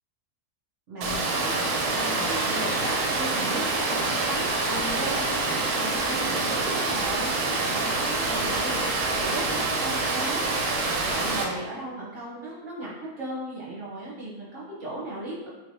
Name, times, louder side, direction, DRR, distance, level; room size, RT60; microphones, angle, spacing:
voice 1, 0.9-10.5 11.0-15.5, right 1 dB, 55° right, -7 dB, 1.1 m, -36 dB
Water, 1.0-11.4, right 3 dB, 85° right, 1.1 m, -26 dB
3.6 x 3.1 x 2.7 m, 1.1 s
omnidirectional pair, 1.7 m